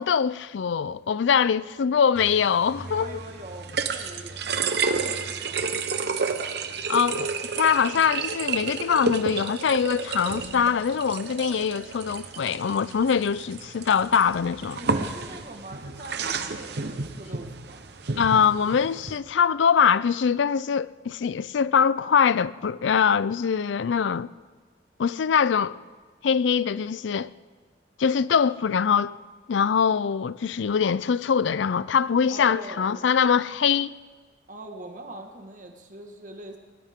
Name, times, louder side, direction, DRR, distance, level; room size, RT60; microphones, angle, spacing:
voice 1, 0.0-3.1 6.9-14.8 18.2-24.3 25.0-25.8 26.2-27.3 28.0-29.1 29.5-33.9, left 7 dB, 75° left, 0.4 m, -23 dB
sound 1, 2.2-19.2, right 4 dB, 60° right, 1.0 m, -31 dB
voice 2, 2.8-5.8 14.8-17.9 32.3-33.0 34.5-36.6, right 1 dB, 45° right, 1.6 m, -42 dB
20.0 x 18.5 x 3.7 m
head